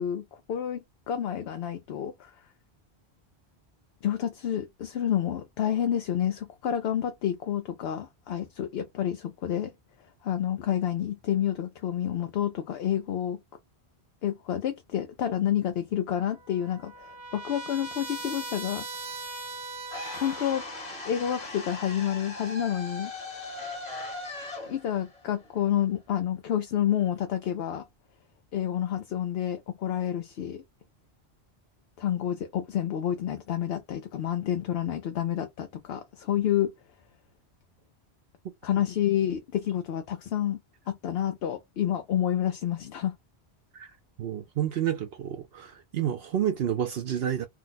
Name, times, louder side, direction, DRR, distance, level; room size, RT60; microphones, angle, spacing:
voice 1, 0.0-2.3 4.0-9.7 10.2-13.4 14.2-18.9 20.1-20.6 21.0-23.1 24.7-27.9 28.5-30.6 32.0-36.7 38.6-40.6 40.9-43.2, left 10 dB, 70° left, 0.8 m, -29 dB
Trumpet, 16.2-20.9, right 2 dB, 30° right, 0.7 m, -40 dB
sound 1, 19.9-26.0, left 2 dB, 40° left, 1.2 m, -39 dB
voice 2, 44.2-47.5, right 10 dB, 70° right, 0.8 m, -29 dB
2.7 x 2.1 x 3.9 m
omnidirectional pair, 1.1 m